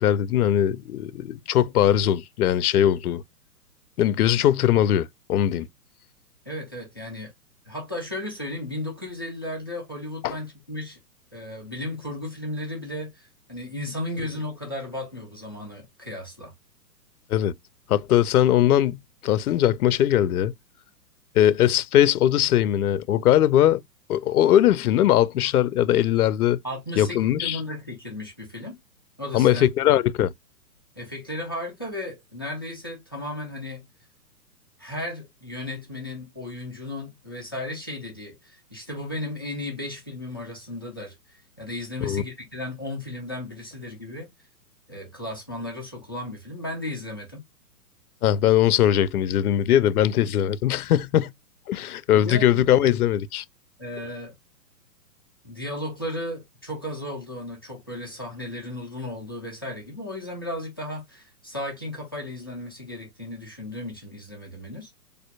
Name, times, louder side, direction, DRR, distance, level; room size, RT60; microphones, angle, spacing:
voice 1, 0.0-3.2 4.0-5.7 10.2-10.4 17.3-17.5 17.9-20.5 21.4-23.8 24.1-26.6 27.0-27.6 29.3-30.3 42.0-42.2 48.2-51.3 51.7-53.4, left 11 dB, 65° left, 0.6 m, -20 dB
voice 2, 6.5-7.3 7.7-11.0 11.3-16.5 26.6-28.8 29.2-29.6 31.0-33.9 34.8-44.3 44.9-47.4 52.1-52.9 53.8-54.3 55.4-65.0, left 1 dB, 15° left, 0.3 m, -35 dB
4.3 x 2.6 x 2.2 m
hypercardioid pair, 135°, 49 cm